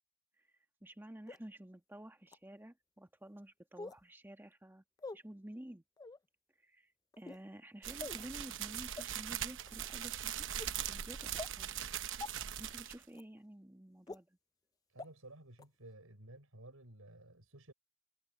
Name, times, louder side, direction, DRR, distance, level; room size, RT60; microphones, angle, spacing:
voice 1, 0.8-4.8 5.1-5.8 6.6-6.9 7.2-10.5 10.9-11.8 12.6-14.4, right 1 dB, 10° right, 1.3 m, -51 dB
sound 1, 1.3-1.4 2.3-2.4 3.8-4.0 5.0-5.2 6.0-6.2 7.1-7.4 8.0-8.2 9.0-9.1 9.7-9.9 10.6-10.7 11.4-11.5 12.2-12.3 13.1-13.2 14.1-14.2 15.0-15.1 15.6-15.7, left 3 dB, 15° left, 0.3 m, -45 dB
sound 2, 7.8-13.0, right 10 dB, 60° right, 0.9 m, -41 dB
voice 2, 14.9-17.7, right 1 dB, 75° right, 6.1 m, -54 dB
head